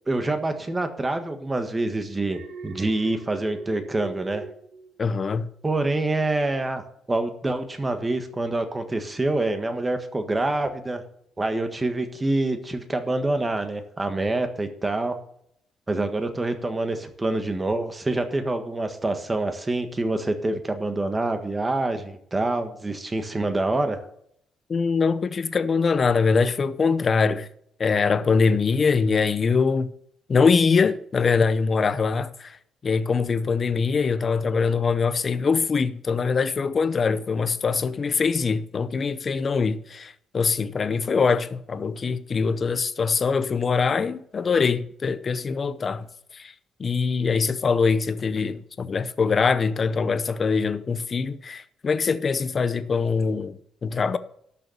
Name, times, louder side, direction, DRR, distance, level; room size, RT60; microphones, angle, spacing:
voice 1, 0.1-4.4 5.6-6.8 7.1-11.0 11.4-15.2 15.9-24.0, right 2 dB, 15° right, 1.5 m, -26 dB
Alarm, 2.2-5.5 5.9-6.2, right 5 dB, 55° right, 2.3 m, -43 dB
voice 2, 5.0-5.5 24.7-27.5 27.8-29.9 30.3-32.6 32.8-46.1 46.3-46.5 46.8-54.2, left 5 dB, 30° left, 0.7 m, -23 dB
12.0 x 6.7 x 6.8 m
cardioid pair, 145°, 0 cm